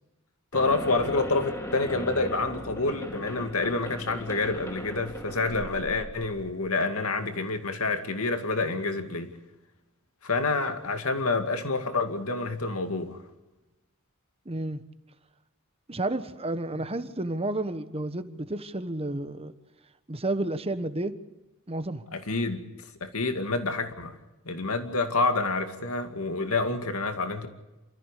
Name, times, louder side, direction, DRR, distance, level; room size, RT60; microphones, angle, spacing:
voice 1, 0.5-9.3 10.2-13.2 22.1-22.6 23.0-24.1 24.5-27.5, left 3 dB, 85° left, 6 dB, 2.4 m, -28 dB
sound 1, 0.5-6.5, equal, 15° left, 2.8 m, -38 dB
voice 2, 14.4-14.8 15.9-19.5 20.1-21.1 21.7-22.0, right 2 dB, 30° right, 11 dB, 1.2 m, -31 dB
27.5 x 14.5 x 8.4 m, 1.0 s
head